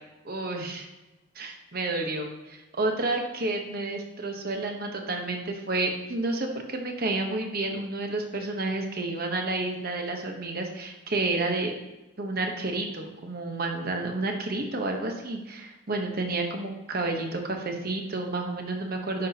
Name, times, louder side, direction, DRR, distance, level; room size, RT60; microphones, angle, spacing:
voice 1, 0.2-0.9 1.3-11.7 12.2-19.3, right 2 dB, 45° right, 3 dB, 1.0 m, -30 dB
10.5 x 5.9 x 2.8 m, 1.1 s
head